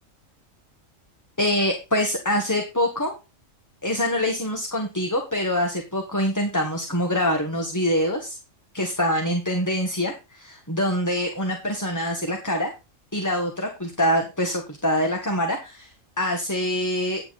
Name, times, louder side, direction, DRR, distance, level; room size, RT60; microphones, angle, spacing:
voice 1, 1.4-3.1 3.8-8.4 8.7-12.7 13.1-17.2, left 1 dB, 15° left, 3 dB, 1.3 m, -25 dB
9.4 x 8.0 x 4.0 m, 0.27 s
omnidirectional pair, 1.4 m